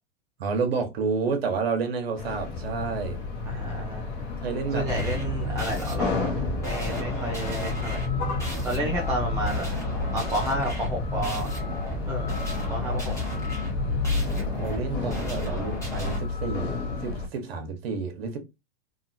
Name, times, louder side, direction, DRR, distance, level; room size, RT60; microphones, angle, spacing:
voice 1, 0.4-3.2 4.4-5.2 13.8-14.0 14.6-18.4, right 5 dB, 70° right, 1.0 m, -30 dB
sound 1, 2.2-17.3, left 4 dB, 35° left, 1.0 m, -32 dB
voice 2, 3.5-4.1 4.7-6.3 6.6-8.1 8.6-9.7 10.1-11.5 12.1-13.1, right 1 dB, 10° right, 0.4 m, -31 dB
sound 2, 4.9-16.2, left 1 dB, 10° left, 1.1 m, -32 dB
2.8 x 2.5 x 2.5 m
hypercardioid pair, 120°, 31 cm